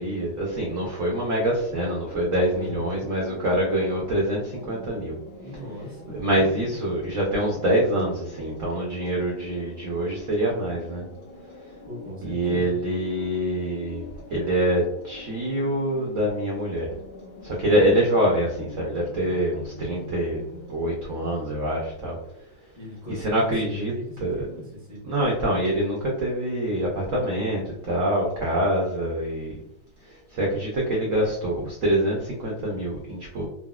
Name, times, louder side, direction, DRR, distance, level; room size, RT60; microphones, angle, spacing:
voice 1, 0.0-5.2 6.1-11.1 12.2-14.0 14.3-16.9 17.4-22.2 23.2-23.9 24.2-24.5 25.0-29.6 30.1-33.5, right 1 dB, 80° right, -3 dB, 0.7 m, -25 dB
sound 1, 1.8-20.7, left 2 dB, 65° left, 1.3 m, -44 dB
voice 2, 2.5-3.1 5.4-6.8 11.8-12.8 17.6-18.0 22.8-25.1 25.4-25.5, left 1 dB, 15° left, -7 dB, 0.6 m, -38 dB
3.8 x 2.0 x 2.3 m, 0.77 s
omnidirectional pair, 2.2 m